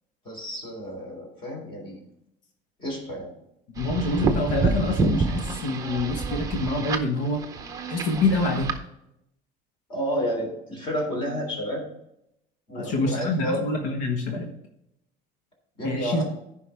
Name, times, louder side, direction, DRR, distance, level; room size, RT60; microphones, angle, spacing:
voice 1, 0.3-2.0 2.8-3.3 9.9-11.8 12.7-13.6 15.8-16.2, equal, 25° left, 0 dB, 3.5 m, -30 dB
voice 2, 3.8-7.4 7.9-8.7 12.7-14.5 15.8-16.2, left 2 dB, 85° left, 3 dB, 1.5 m, -26 dB
sound 1, 3.8-8.8, right 4 dB, 20° right, 0.8 m, -28 dB
14.0 x 5.5 x 3.4 m, 0.80 s
cardioid pair, 170°, 18 cm